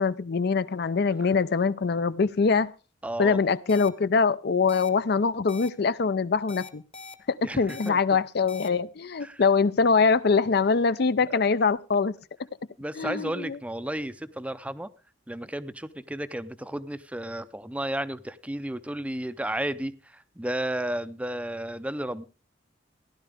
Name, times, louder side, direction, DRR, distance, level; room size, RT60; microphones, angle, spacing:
voice 1, 0.0-2.7 3.2-6.8 7.3-12.1 13.0-13.6, left 5 dB, 55° left, 0.5 m, -23 dB
voice 2, 3.0-3.4 7.4-8.0 9.2-9.4 11.3-11.4 12.8-14.9 15.3-22.2, right 1 dB, 5° right, 0.5 m, -33 dB
sound 1, 3.7-3.9 4.7-4.9 5.5-5.7 6.5-7.1 7.7-7.9 8.5-8.7, left 4 dB, 30° left, 1.1 m, -42 dB
16.0 x 11.0 x 3.5 m
head